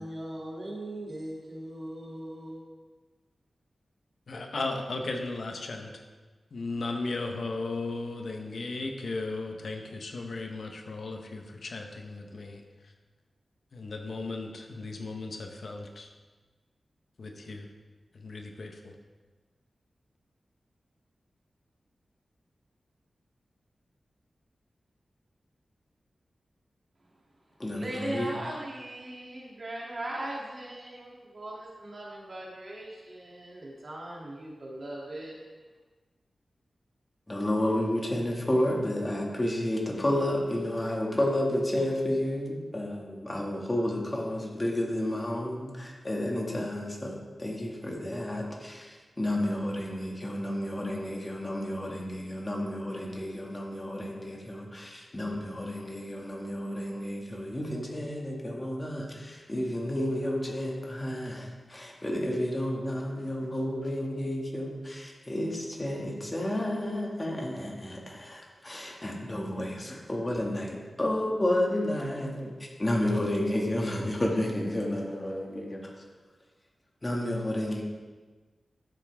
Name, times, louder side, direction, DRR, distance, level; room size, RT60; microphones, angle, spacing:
voice 1, 0.0-2.6 27.1-27.2 27.7-35.4, right 1 dB, 50° right, -4 dB, 2.9 m, -39 dB
voice 2, 4.3-6.0 6.5-12.6 13.7-16.1 17.2-17.7 18.1-18.9, left 3 dB, 70° left, 3 dB, 1.1 m, -36 dB
voice 3, 27.6-28.3 37.3-75.9 77.0-77.8, left 1 dB, 25° left, -1 dB, 2.2 m, -31 dB
13.0 x 7.4 x 3.6 m, 1.3 s
wide cardioid pair, 75°, 0 cm